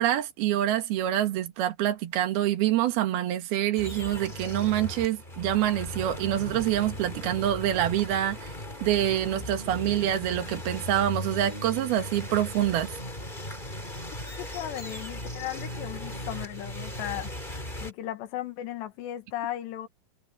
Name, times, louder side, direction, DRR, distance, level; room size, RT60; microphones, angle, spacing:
voice 1, 0.0-8.5 8.8-12.9, right 12 dB, 70° right, 3.5 m, -26 dB
sound 1, 3.8-17.9, left 1 dB, 10° left, 5.7 m, -37 dB
voice 2, 14.4-17.3 17.8-19.9, left 13 dB, 85° left, 3.6 m, -36 dB
omnidirectional pair, 4.8 m